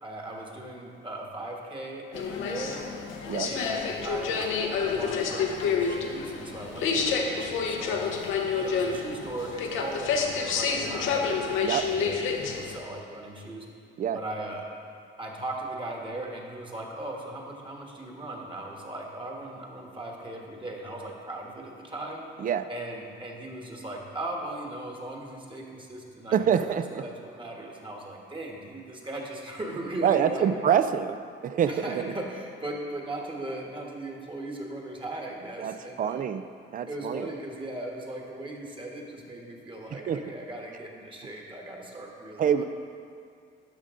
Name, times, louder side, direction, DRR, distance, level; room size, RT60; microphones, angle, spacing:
voice 1, 0.0-2.8 3.4-8.1 8.5-11.2 11.9-13.7 14.1-14.6 15.2-22.2 22.7-30.5 31.7-36.3 36.9-42.6, right 1 dB, 25° right, 0 dB, 1.4 m, -38 dB
sound 1, 2.1-12.8, left 5 dB, 85° left, 0.8 m, -29 dB
voice 2, 26.3-27.0 30.0-31.2 31.4-32.1 35.6-36.4 36.7-37.3 39.9-40.2 42.4-42.6, right 8 dB, 45° right, 11 dB, 0.4 m, -26 dB
12.0 x 5.2 x 3.7 m, 2.3 s
cardioid pair, 90°, 20 cm